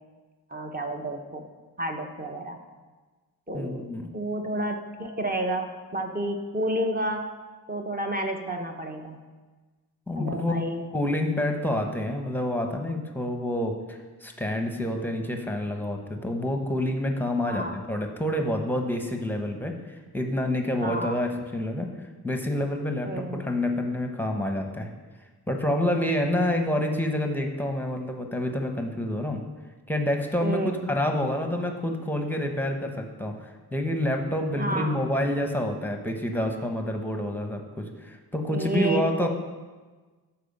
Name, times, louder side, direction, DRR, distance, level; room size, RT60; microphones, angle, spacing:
voice 1, 0.5-1.4 1.8-2.6 3.5-3.8 4.1-7.3 7.7-9.2 10.1-10.8 17.5-17.8 20.8-21.2 23.0-23.4 30.4-30.8 34.6-34.9 38.5-39.3, right 1 dB, 25° right, 3 dB, 1.0 m, -30 dB
voice 2, 3.5-4.1 10.1-10.5 10.9-24.9 25.5-29.4 29.9-39.3, left 1 dB, 5° left, 4 dB, 0.9 m, -28 dB
12.5 x 4.6 x 5.3 m, 1.3 s
wide cardioid pair, 125°, 38 cm